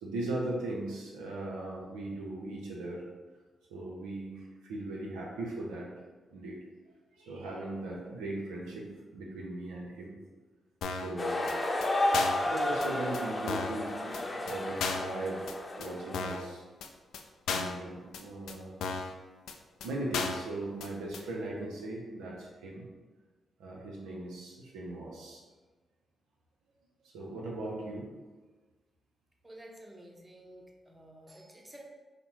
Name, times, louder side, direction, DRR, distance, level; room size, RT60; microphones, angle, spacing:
voice 1, 0.0-3.0 3.7-5.9 6.3-6.6 7.2-10.2 10.9-11.5 12.4-15.4 15.8-16.6 17.5-18.8 19.8-22.9 23.6-25.4 27.1-28.1, right 2 dB, 85° right, -2 dB, 0.7 m, -38 dB
sound 1, 10.8-11.1 11.5-11.6 11.8-11.9 12.1-12.5 12.8-12.9 13.1-13.2 13.5-13.8 14.1-14.2 14.5-14.6 14.8-15.1 15.5-15.6 15.8-15.9 16.1-16.5 16.8-16.9 17.1-17.2 17.5-17.8 18.1-18.2 18.5-18.6 18.8-19.1 19.5-19.6 19.8-19.9 20.1-20.5 20.8-20.9 21.1-21.2, left 4 dB, 80° left, 0.4 m, -34 dB
sound 2, 11.2-16.4, left 1 dB, 30° left, 0.7 m, -32 dB
voice 2, 29.4-31.8, right 1 dB, 20° right, 0 dB, 1.0 m, -51 dB
5.0 x 2.1 x 4.6 m, 1.3 s
hypercardioid pair, 45°, 0 cm